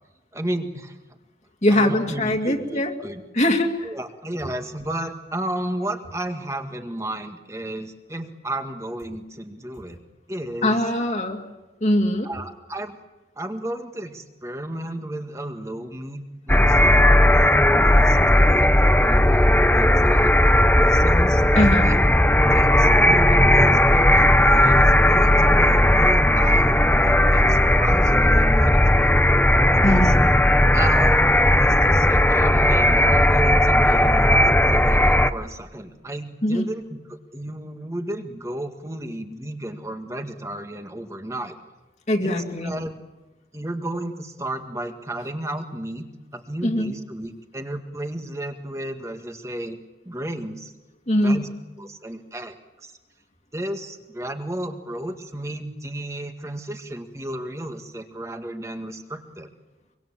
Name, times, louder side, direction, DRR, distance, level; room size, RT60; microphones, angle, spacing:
voice 1, 0.3-1.0 1.7-3.2 3.8-10.0 10.3-10.8 12.2-13.0 13.4-20.3 20.7-29.1 29.7-30.1 30.7-41.6 42.2-43.0 43.5-49.8 50.0-50.7 51.1-51.5 51.8-52.9 53.5-59.5, right 1 dB, 15° right, 6 dB, 1.8 m, -33 dB
voice 2, 1.6-2.9 3.3-3.9 10.6-11.5 11.8-12.3 21.6-21.9 29.8-30.3 36.4-36.7 42.1-42.7 46.6-46.9 51.1-51.5, left 1 dB, 40° left, 2 dB, 2.3 m, -22 dB
sound 1, 16.5-35.3, left 1 dB, 10° left, 0.8 m, -16 dB
25.0 x 24.5 x 7.5 m, 1.1 s
head